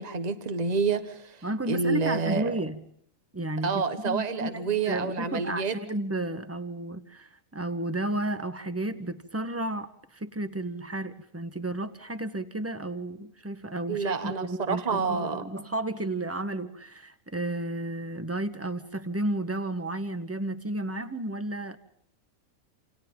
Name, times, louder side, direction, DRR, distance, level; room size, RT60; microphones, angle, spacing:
voice 1, 0.0-1.4 1.7-2.6 3.6-5.7 13.9-15.4, right 4 dB, 30° right, 9 dB, 1.5 m, -28 dB
voice 2, 1.4-2.8 3.3-21.8, right 1 dB, 10° right, 10 dB, 1.2 m, -32 dB
28.5 x 28.5 x 3.9 m, 0.72 s
omnidirectional pair, 1.5 m